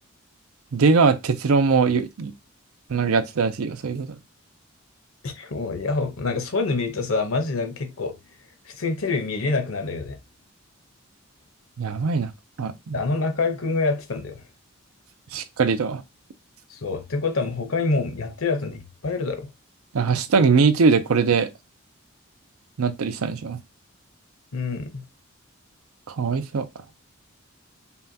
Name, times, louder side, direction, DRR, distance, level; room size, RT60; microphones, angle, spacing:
voice 1, 0.7-2.3 2.9-4.2 11.8-12.3 12.6-13.0 15.3-16.0 19.9-21.5 22.8-23.6 26.1-26.7, right 5 dB, 90° right, 0.5 m, -21 dB
voice 2, 5.2-8.2 8.6-10.2 12.9-14.4 16.7-19.5 24.5-25.0, left 3 dB, 70° left, 0.8 m, -26 dB
5.5 x 2.2 x 2.7 m
head